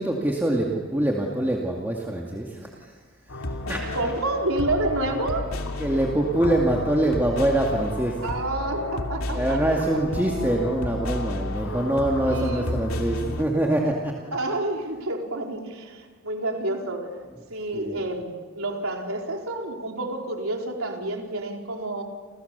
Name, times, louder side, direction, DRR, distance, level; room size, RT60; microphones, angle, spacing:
voice 1, 0.0-2.9 3.7-3.8 5.8-8.3 9.3-14.1 17.7-18.0, right 1 dB, 10° right, -2 dB, 2.3 m, -24 dB
sound 1, 3.3-13.4, left 1 dB, 75° left, 2.6 m, -31 dB
voice 2, 3.9-5.5 8.2-9.6 12.2-12.7 14.3-17.1 17.5-22.0, right 2 dB, 70° right, 1 dB, 4.4 m, -29 dB
30.0 x 28.5 x 7.0 m, 1.4 s
head